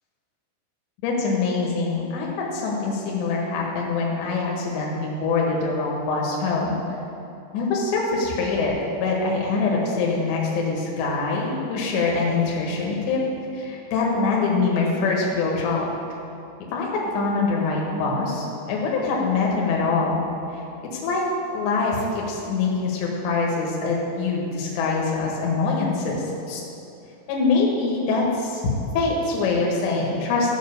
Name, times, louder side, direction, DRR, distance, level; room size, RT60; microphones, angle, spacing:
voice 1, 1.0-6.8 7.5-13.2 13.5-15.9 16.7-20.2 21.0-21.2 21.5-26.6 27.3-28.6 29.0-30.5, left 4 dB, 70° left, -2 dB, 3.6 m, -24 dB
14.0 x 6.1 x 7.0 m, 2.7 s
omnidirectional pair, 5.5 m